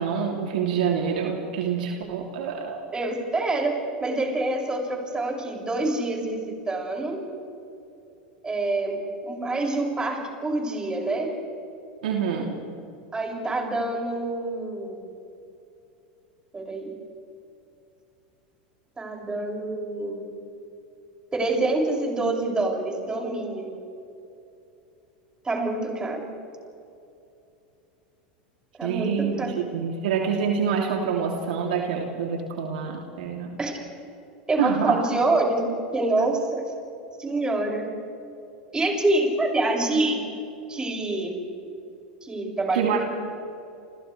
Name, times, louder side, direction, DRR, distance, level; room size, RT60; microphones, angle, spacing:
voice 1, 0.0-2.8 12.0-12.5 28.8-29.4 29.7-33.5 34.6-35.0 42.7-43.0, right 6 dB, 75° right, 0 dB, 3.1 m, -26 dB
voice 2, 2.9-7.2 8.4-11.3 13.1-15.0 16.5-16.9 19.0-20.3 21.3-23.8 25.4-26.3 28.8-29.1 29.4-29.5 33.6-33.8 34.5-35.7 35.9-36.6 37.2-37.8 38.7-40.2 40.7-41.4 42.2-43.0, right 2 dB, 15° right, -1 dB, 6.8 m, -26 dB
29.5 x 29.0 x 3.4 m, 2.7 s
hypercardioid pair, 90°, 5 cm